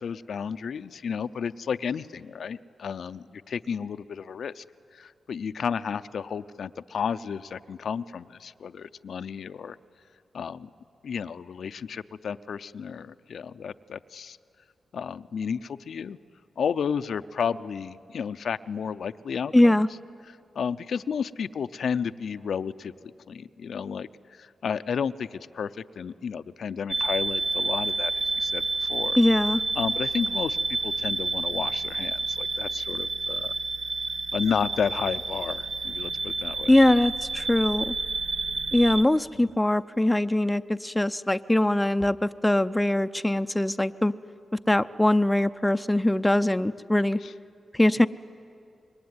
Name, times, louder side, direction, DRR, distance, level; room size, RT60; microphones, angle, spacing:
voice 1, 0.0-4.6 4.9-9.8 10.3-10.7 11.0-14.4 14.9-16.2 16.6-19.8 20.5-22.9 23.3-29.2 29.8-33.5 34.3-36.7 39.3-39.4 47.2-47.3, left 6 dB, 75° left, 11 dB, 0.6 m, -32 dB
voice 2, 19.5-19.9 29.2-29.6 36.7-37.9 38.7-44.1 44.7-47.2 47.7-48.1, left 1 dB, 10° left, 10 dB, 0.6 m, -22 dB
sound 1, 26.9-39.0, right 3 dB, 60° right, 1.0 m, -29 dB
26.5 x 22.5 x 9.6 m, 2.4 s
cardioid pair, 70°, 0 cm